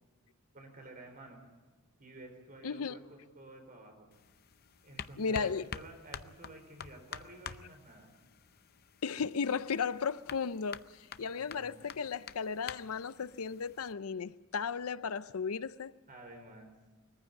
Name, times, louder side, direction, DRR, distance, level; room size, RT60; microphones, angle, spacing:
voice 1, 0.5-1.4 2.0-4.1 4.8-8.1 11.2-11.9 16.1-16.7, right 1 dB, 40° right, 4.5 m, -52 dB
voice 2, 2.6-3.0 5.2-5.7 9.0-15.9, left 5 dB, 85° left, 0.6 m, -35 dB
sound 1, 4.1-13.9, left 7 dB, 45° left, 0.6 m, -48 dB
21.5 x 15.0 x 9.6 m
head